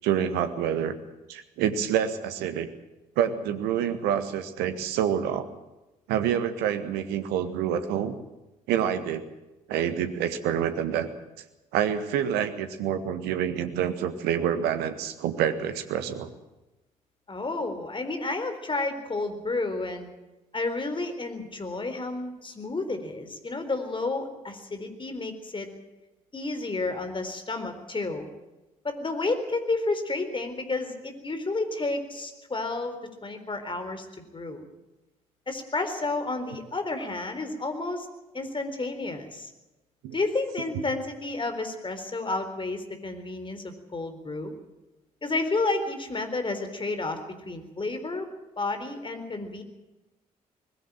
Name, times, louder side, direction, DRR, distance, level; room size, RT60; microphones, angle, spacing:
voice 1, 0.0-1.0 1.3-2.7 3.2-5.5 6.1-8.2 8.7-9.3 9.7-11.1 11.7-16.3 40.0-40.1 40.7-40.8, right 9 dB, 65° right, 10 dB, 1.7 m, -27 dB
voice 2, 17.3-20.1 20.5-25.7 26.3-28.3 28.8-33.0 33.2-34.1 34.3-34.7 35.5-38.1 38.3-39.5 40.1-44.5 45.2-48.3 48.6-49.6, left 3 dB, 30° left, 8 dB, 4.1 m, -31 dB
20.5 x 15.5 x 9.1 m, 1.0 s
figure-of-eight pair, 45°, 18 cm